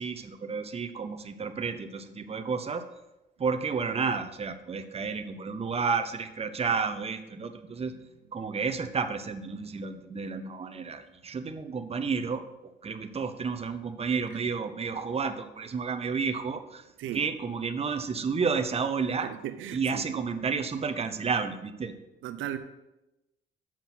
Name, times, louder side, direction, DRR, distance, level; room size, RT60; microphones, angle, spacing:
voice 1, 0.0-2.9 3.4-7.9 8.3-12.4 12.8-16.9 17.1-19.3 19.7-21.9, right 5 dB, 30° right, 7 dB, 0.8 m, -31 dB
voice 2, 19.2-20.0 22.2-22.6, right 11 dB, 85° right, 10 dB, 0.6 m, -36 dB
7.4 x 6.0 x 5.8 m, 0.97 s
cardioid pair, 90°, 20 cm